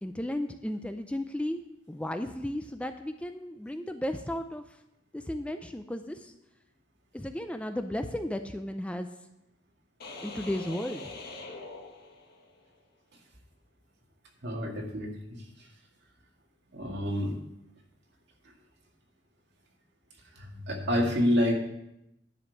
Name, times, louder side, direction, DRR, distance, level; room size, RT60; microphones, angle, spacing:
voice 1, 0.0-1.6 1.9-4.6 5.1-6.3 7.1-9.1 10.2-11.1, left 1 dB, 5° left, 7 dB, 0.4 m, -34 dB
sound 1, 10.0-12.6, left 3 dB, 55° left, 1.5 m, -43 dB
voice 2, 14.4-15.7 16.7-17.4 20.4-21.5, left 1 dB, 60° right, 0 dB, 2.1 m, -28 dB
10.5 x 5.2 x 7.1 m, 0.84 s
head